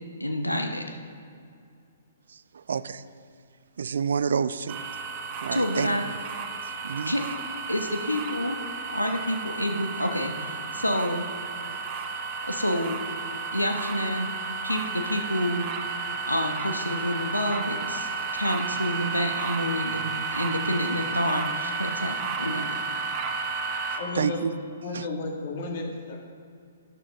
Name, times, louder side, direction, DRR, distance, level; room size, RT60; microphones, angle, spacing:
voice 1, 0.2-1.0 5.5-6.0 7.1-7.2 7.7-8.6 8.9-11.3 12.4-13.0 13.5-14.3 14.6-15.7 16.3-20.0 20.3-22.7, left 1 dB, 85° left, 4 dB, 1.0 m, -28 dB
voice 2, 2.3-3.0 3.8-4.8 5.4-5.9 6.6-7.1 23.9-24.5 24.9-25.1, right 6 dB, 55° right, 15 dB, 0.4 m, -29 dB
sound 1, 4.7-24.0, right 4 dB, 25° right, 1.1 m, -32 dB
voice 3, 24.0-24.5 24.8-26.4, left 3 dB, 45° left, 1 dB, 2.0 m, -33 dB
12.5 x 10.0 x 3.7 m, 2.3 s
figure-of-eight pair, 120°, 0 cm